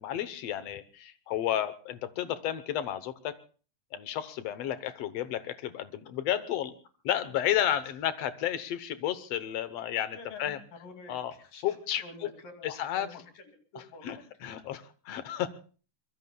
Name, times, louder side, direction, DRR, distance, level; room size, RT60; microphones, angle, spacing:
voice 1, 0.0-3.3 3.9-6.7 7.0-10.6 11.1-11.3 11.6-12.0 12.6-13.1 13.8-15.5, left 11 dB, 65° left, 13 dB, 1.7 m, -32 dB
voice 2, 10.1-14.2, left 3 dB, 90° left, 6 dB, 4.3 m, -48 dB
24.5 x 22.0 x 2.3 m, 0.39 s
omnidirectional pair, 3.8 m